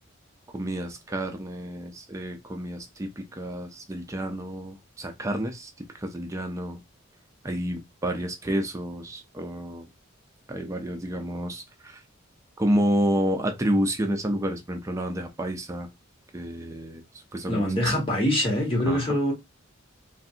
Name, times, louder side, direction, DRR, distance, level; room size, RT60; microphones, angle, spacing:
voice 1, 0.5-6.8 7.4-9.9 10.5-12.0 12.6-15.9 16.3-18.0 18.9-19.2, equal, 15° right, 0.4 m, -30 dB
voice 2, 17.5-19.3, equal, 25° left, 1.3 m, -24 dB
3.2 x 2.5 x 2.7 m
head